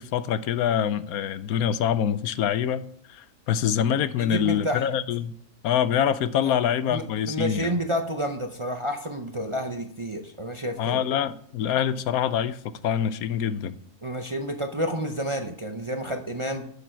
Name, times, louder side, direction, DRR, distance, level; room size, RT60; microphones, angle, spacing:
voice 1, 0.0-5.3 5.6-7.8 10.8-13.8, left 9 dB, 85° left, 1.1 m, -25 dB
voice 2, 4.2-4.9 6.4-6.6 6.9-11.0 14.0-16.6, equal, 35° right, 0.5 m, -30 dB
11.0 x 6.9 x 4.5 m
omnidirectional pair, 1.5 m